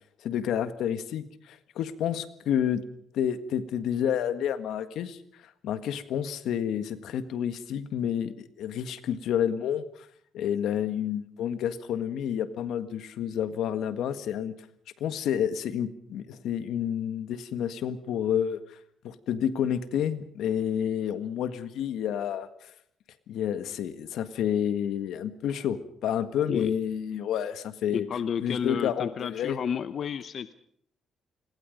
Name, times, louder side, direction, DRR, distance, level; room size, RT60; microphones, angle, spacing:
voice 1, 0.2-2.9 3.1-5.2 5.6-9.8 10.3-14.5 15.0-18.8 19.0-22.7 23.3-28.1 28.4-29.6, left 9 dB, 80° left, 11 dB, 1.6 m, -29 dB
voice 2, 27.9-30.5, left 7 dB, 55° left, 12 dB, 0.8 m, -31 dB
28.0 x 21.0 x 5.3 m, 0.67 s
cardioid pair, 90°, 0 cm